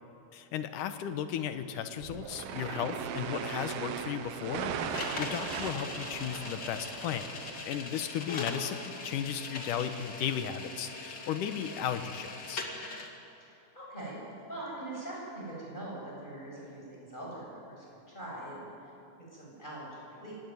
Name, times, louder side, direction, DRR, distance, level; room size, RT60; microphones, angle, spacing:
voice 1, 0.3-7.3 7.7-12.7, left 9 dB, 70° left, 9 dB, 2.3 m, -35 dB
sound 1, 2.0-7.6, right 7 dB, 75° right, 2.9 m, -38 dB
sound 2, 4.9-13.1, left 3 dB, 35° left, 2.2 m, -40 dB
voice 2, 13.4-14.2 14.5-18.7 19.3-20.3, right 1 dB, 10° left, -4 dB, 7.4 m, -42 dB
24.5 x 18.0 x 9.5 m, 2.8 s
omnidirectional pair, 4.4 m